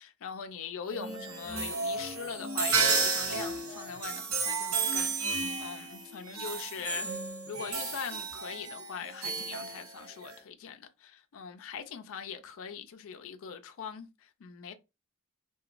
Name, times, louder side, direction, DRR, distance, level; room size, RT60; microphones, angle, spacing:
voice 1, 0.0-7.2 7.5-14.7, left 7 dB, 65° left, 0.4 m, -42 dB
sound 1, 0.9-10.4, right 4 dB, 70° right, 0.7 m, -32 dB
sound 2, 1.5-5.8, right 3 dB, 5° right, 1.4 m, -53 dB
2.9 x 2.2 x 2.4 m
head